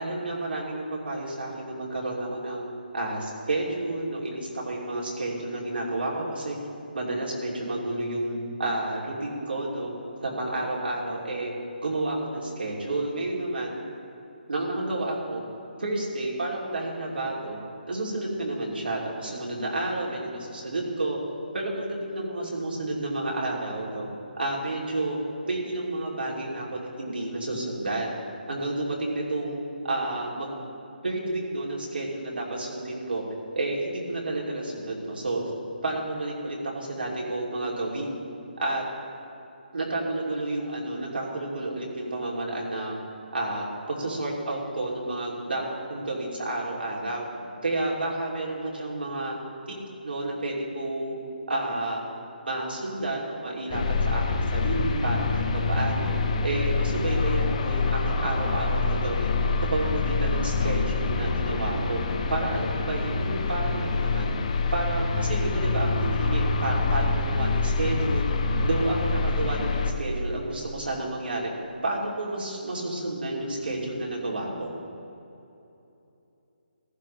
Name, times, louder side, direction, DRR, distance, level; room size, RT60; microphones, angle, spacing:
voice 1, 0.0-2.6 2.9-6.6 6.9-9.9 10.2-11.5 11.8-13.8 14.5-15.4 15.8-17.6 17.9-21.2 21.5-24.1 24.4-25.2 25.4-28.1 28.5-30.5 31.0-33.2 33.5-35.5 35.8-38.1 38.6-38.8 39.7-43.0 43.3-45.6 45.9-49.3 49.7-49.8 50.0-51.2 51.5-52.0 52.4-56.1 56.4-59.3 59.7-62.0 62.3-64.3 64.7-68.3 68.6-71.5 71.8-74.7, right 2 dB, 80° right, -3 dB, 2.9 m, -30 dB
sound 1, 53.7-69.9, left 3 dB, 40° left, 0.8 m, -26 dB
15.0 x 12.0 x 3.3 m, 2.8 s
hypercardioid pair, 155°, 5 cm